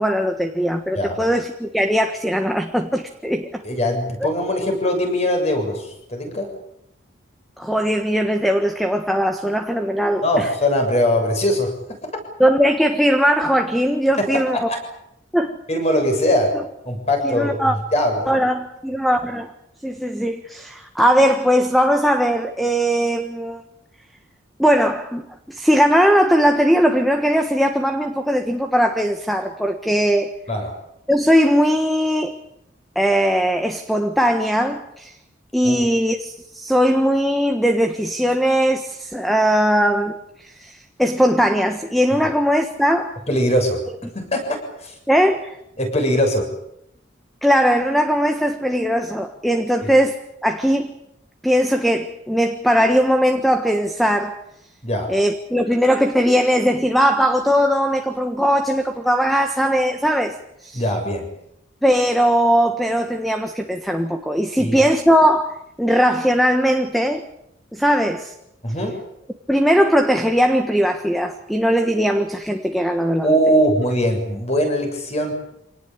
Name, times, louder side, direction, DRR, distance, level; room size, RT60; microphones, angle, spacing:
voice 1, 0.0-3.6 7.6-10.5 12.4-14.6 15.3-15.6 17.2-17.7 18.3-19.5 19.8-23.6 24.6-30.3 31.1-32.4 32.9-35.1 35.5-43.2 45.1-45.6 47.4-50.9 51.4-54.4 55.1-60.4 60.6-60.8 61.8-67.2 67.7-68.3 69.5-73.4, equal, ahead, 6 dB, 1.4 m, -19 dB
voice 2, 3.6-6.5 10.2-12.0 14.2-14.8 15.7-16.5 16.9-18.3 30.5-30.7 35.6-35.8 42.2-42.3 43.3-43.8 44.1-45.0 45.8-46.5 49.8-49.9 54.8-55.1 60.7-61.3 64.6-64.8 68.6-69.0 73.2-75.3, equal, 35° left, 4 dB, 7.1 m, -21 dB
26.5 x 19.0 x 8.9 m, 0.78 s
head